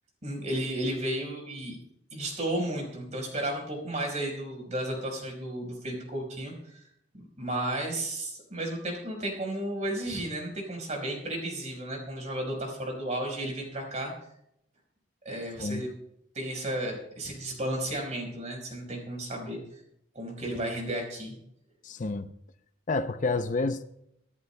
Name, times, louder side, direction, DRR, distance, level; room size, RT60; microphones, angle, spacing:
voice 1, 0.2-1.8 2.1-6.8 7.4-14.1 15.2-15.9 16.3-19.8 20.1-21.3, right 1 dB, 40° right, 4.4 m, -33 dB
voice 2, 21.8-22.3 22.9-23.8, left 3 dB, 45° left, 0.5 m, -29 dB
25.0 x 11.0 x 2.2 m
head